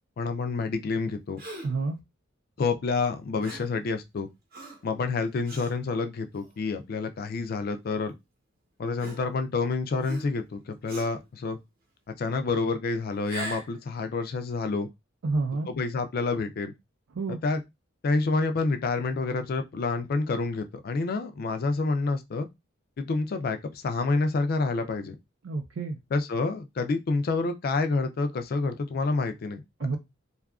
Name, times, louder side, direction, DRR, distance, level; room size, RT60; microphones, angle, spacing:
voice 1, 0.2-1.4 2.6-4.3 4.8-8.1 8.8-11.6 12.2-14.9 15.7-16.7 17.3-17.6 18.0-22.5 23.0-25.2 26.1-29.6, left 3 dB, 50° left, 0.3 m, -28 dB
Gasp, 1.4-1.8 3.4-3.8 4.5-4.9 5.5-5.7 6.4-6.6 7.7-7.8 9.0-9.6 10.0-10.5 10.9-11.2 13.1-13.8, right 1 dB, 50° right, 0.8 m, -40 dB
voice 2, 1.6-2.0 15.2-15.7 17.1-17.4 25.4-26.0 29.8-30.0, right 3 dB, 70° right, 0.4 m, -29 dB
2.6 x 2.3 x 2.3 m
head